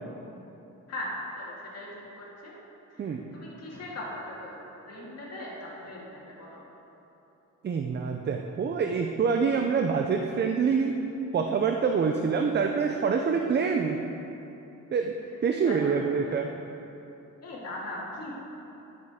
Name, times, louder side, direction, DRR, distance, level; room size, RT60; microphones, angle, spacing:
voice 1, 0.9-1.9 2.1-2.5 2.9-6.6 15.7-15.9 17.4-18.5, left 1 dB, 50° left, -5 dB, 2.0 m, -39 dB
voice 2, 7.6-11.0 11.3-14.0 14.9-15.1 15.4-16.5, right 5 dB, 35° right, 4 dB, 0.5 m, -26 dB
10.5 x 6.5 x 3.6 m, 2.9 s
cardioid pair, 95°, 32 cm